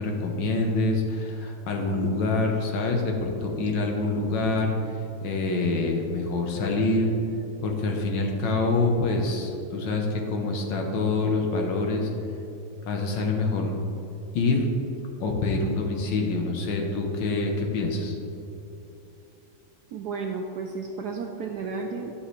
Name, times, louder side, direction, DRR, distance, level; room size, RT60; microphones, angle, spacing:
voice 1, 0.0-4.7 5.2-7.1 7.6-12.1 12.9-13.7 14.4-14.7 15.2-18.2, left 3 dB, 70° left, 2 dB, 1.6 m, -26 dB
voice 2, 19.9-22.1, right 4 dB, 75° right, 2 dB, 0.9 m, -32 dB
10.5 x 6.6 x 3.2 m, 2.9 s
omnidirectional pair, 2.2 m